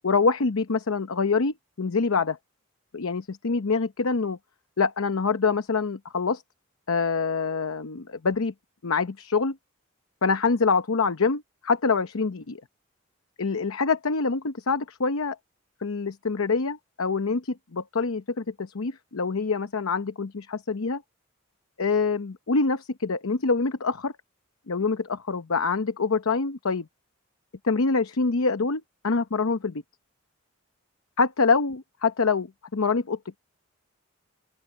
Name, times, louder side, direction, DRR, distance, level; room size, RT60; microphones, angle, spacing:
voice 1, 0.0-2.4 2.9-4.4 4.8-6.4 6.9-8.5 8.8-9.6 10.2-12.6 13.4-15.4 15.8-21.0 21.8-24.1 24.7-26.9 27.6-29.8 31.2-33.2, left 4 dB, 75° left, 0.8 m, -25 dB
open air
head